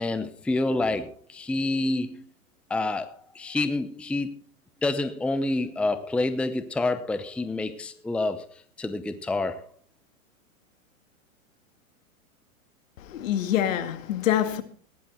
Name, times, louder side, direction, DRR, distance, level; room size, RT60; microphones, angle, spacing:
voice 1, 0.0-2.2 2.7-4.3 4.8-9.7, left 2 dB, 5° left, 0.7 m, -28 dB
voice 2, 13.1-14.6, left 11 dB, 70° left, 2.1 m, -25 dB
16.5 x 11.0 x 4.4 m
hypercardioid pair, 115°, 42 cm